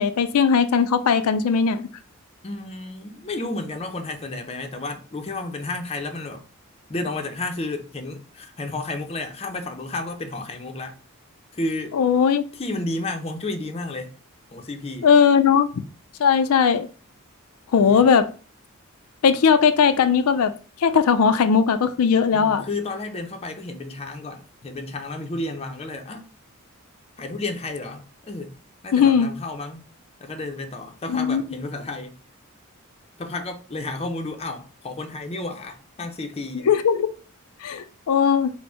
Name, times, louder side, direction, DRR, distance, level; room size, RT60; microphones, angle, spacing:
voice 1, 0.0-1.8 11.9-12.4 15.0-15.7 16.2-16.9 17.7-18.3 19.2-20.5 20.8-22.6 28.9-29.3 31.1-31.4 36.7-37.1 37.6-38.5, left 6 dB, 90° left, 0.4 m, -18 dB
voice 2, 2.4-6.4 6.9-10.9 11.5-12.0 12.5-14.1 14.5-15.1 17.9-18.0 22.3-26.3 27.2-28.5 28.8-29.9 30.2-32.1 33.2-36.7, left 2 dB, 30° left, 0.5 m, -32 dB
4.3 x 2.1 x 4.3 m
head